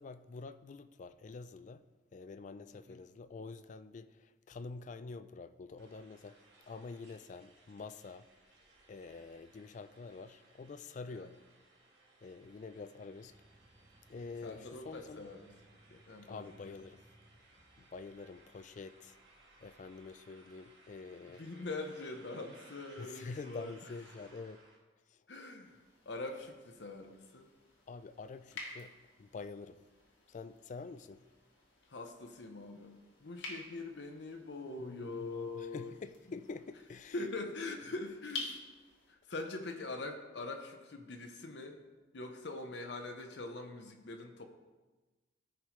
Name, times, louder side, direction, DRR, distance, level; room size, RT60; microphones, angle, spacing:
voice 1, 0.0-1.9 2.1-6.4 6.7-8.3 8.9-11.4 12.2-13.4 14.1-15.3 16.2-17.0 17.8-19.1 19.6-21.4 23.0-24.6 25.1-25.2 27.9-29.8 30.3-31.2 34.8-37.2, left 4 dB, 40° left, 13 dB, 0.3 m, -47 dB
sound 1, 5.8-24.8, right 2 dB, 65° right, 1.6 m, -63 dB
sound 2, 13.2-20.2, right 1 dB, 20° right, 0.8 m, -66 dB
voice 2, 14.4-15.5 15.9-16.5 21.3-23.8 25.3-27.5 31.9-32.9 33.2-35.9 36.3-36.4 37.1-38.6 39.1-41.8 42.1-44.4, left 2 dB, 70° left, 5 dB, 0.8 m, -43 dB
sound 3, 25.6-39.1, left 3 dB, 90° left, 1.6 m, -51 dB
14.0 x 4.8 x 3.1 m, 1.2 s
head